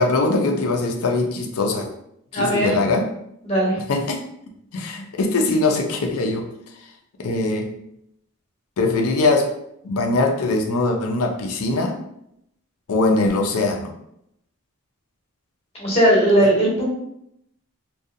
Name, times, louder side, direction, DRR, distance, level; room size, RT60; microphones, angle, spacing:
voice 1, 0.0-1.9 2.3-3.1 3.9-4.2 4.7-6.5 7.2-7.8 8.8-9.5 9.8-12.0 12.9-13.9, left 2 dB, 75° left, 3 dB, 0.5 m, -21 dB
voice 2, 2.3-2.7 3.4-3.8 15.8-16.8, right 1 dB, 25° left, -5 dB, 0.8 m, -18 dB
2.6 x 2.3 x 2.5 m, 0.77 s
head